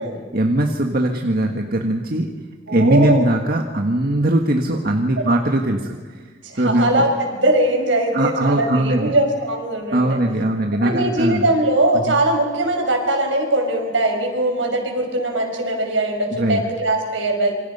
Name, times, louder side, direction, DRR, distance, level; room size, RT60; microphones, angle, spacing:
voice 1, 0.3-2.3 2.7-6.3 6.6-7.0 8.1-9.1 9.9-11.5 12.0-12.2 16.3-16.6, right 1 dB, 55° right, 2 dB, 1.7 m, -20 dB
voice 2, 2.7-3.2 6.4-10.2 10.8-17.5, right 1 dB, 80° right, 3 dB, 5.8 m, -20 dB
27.5 x 25.5 x 5.6 m, 1.5 s
head